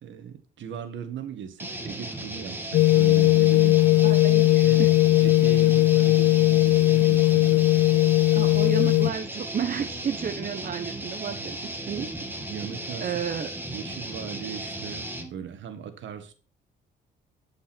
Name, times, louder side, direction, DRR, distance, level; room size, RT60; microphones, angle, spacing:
voice 1, 0.0-3.9 4.6-4.8 5.2-7.6 12.5-13.1 13.7-16.3, right 7 dB, 70° right, 1.7 m, -38 dB
sound 1, 1.6-15.3, right 1 dB, 10° right, 2.2 m, -36 dB
sound 2, 2.7-9.1, left 18 dB, 70° left, 0.4 m, -19 dB
voice 2, 4.0-4.9 8.3-12.1 13.0-13.5, right 7 dB, 45° right, 1.0 m, -32 dB
12.0 x 5.4 x 4.4 m
cardioid pair, 90°, 20 cm